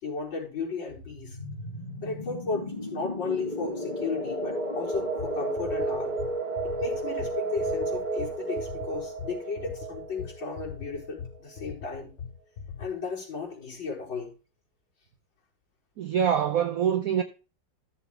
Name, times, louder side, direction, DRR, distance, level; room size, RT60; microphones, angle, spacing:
voice 1, 0.0-1.4 2.0-6.1 6.8-12.1 12.8-14.3, left 4 dB, 75° left, 5.4 m, -34 dB
sound 1, 0.9-11.4, right 1 dB, 25° left, 2.8 m, -33 dB
sound 2, 4.9-12.9, left 6 dB, 45° left, 1.1 m, -41 dB
voice 2, 16.0-17.2, right 8 dB, 60° right, 1.0 m, -25 dB
14.0 x 7.1 x 3.2 m
omnidirectional pair, 2.1 m